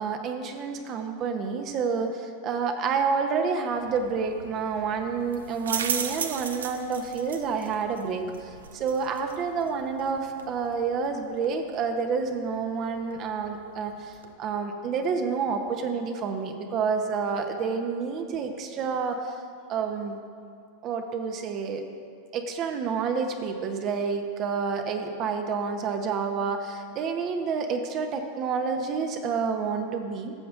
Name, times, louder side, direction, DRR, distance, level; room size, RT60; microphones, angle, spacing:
voice 1, 0.0-19.3 19.7-20.2 20.8-21.9 22.3-30.3, right 5 dB, 45° right, 5 dB, 0.7 m, -29 dB
sound 1, 3.7-14.3, right 6 dB, 80° right, 0.5 m, -38 dB
13.0 x 7.0 x 2.5 m, 2.3 s
hypercardioid pair, 90°, 0 cm